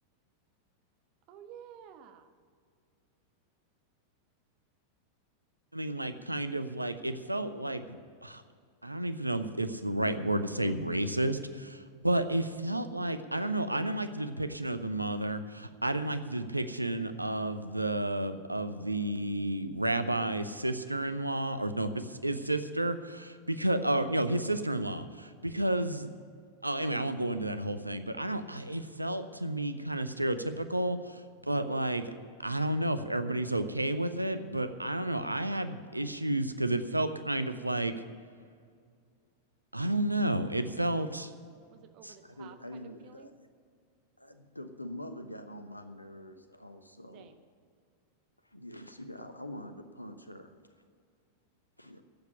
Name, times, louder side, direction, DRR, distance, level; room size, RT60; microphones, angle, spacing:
voice 1, 1.3-2.3 41.7-43.3 47.1-47.4, right 8 dB, 40° right, 7 dB, 1.2 m, -52 dB
voice 2, 5.7-8.4 8.8-26.1 26.6-32.1 32.4-37.9 39.7-41.3 42.0-42.1, right 1 dB, 85° right, 10 dB, 0.7 m, -31 dB
voice 3, 42.2-43.3 44.2-47.3 48.4-50.5 51.8-52.0, left 1 dB, 85° left, 9 dB, 1.0 m, -45 dB
11.5 x 8.2 x 9.0 m, 2.1 s
figure-of-eight pair, 90°, 0 cm